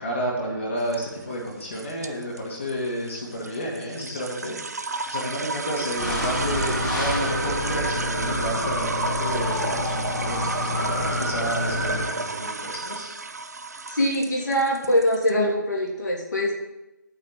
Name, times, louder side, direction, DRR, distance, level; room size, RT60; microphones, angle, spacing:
voice 1, 0.0-4.6 4.8-13.2, equal, 35° left, -1 dB, 2.2 m, -31 dB
sound 1, 0.8-15.3, right 3 dB, 50° right, 0.6 m, -32 dB
sound 2, 6.0-12.1, left 1 dB, 5° left, 1.9 m, -28 dB
voice 2, 13.9-16.5, equal, 55° left, -2 dB, 3.1 m, -23 dB
8.7 x 5.2 x 7.8 m, 0.95 s
figure-of-eight pair, 155°, 11 cm